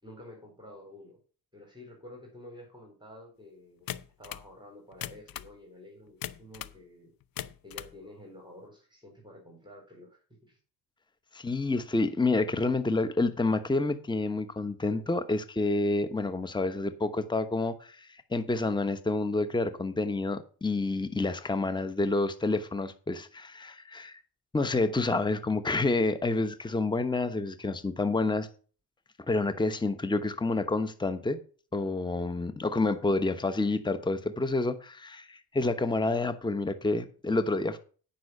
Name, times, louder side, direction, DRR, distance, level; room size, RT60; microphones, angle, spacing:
voice 1, 0.0-1.2 1.5-3.9 4.2-7.1 7.6-10.6, left 1 dB, 10° right, 4.0 m, -50 dB
sound 1, 3.9-4.5 4.9-5.5 6.2-6.8 7.2-8.0, left 11 dB, 50° left, 0.8 m, -39 dB
voice 2, 11.3-24.2 24.5-28.5 29.3-31.4 31.7-37.8, left 2 dB, 10° left, 1.1 m, -28 dB
9.5 x 5.7 x 6.8 m
supercardioid pair, 60°, 44 cm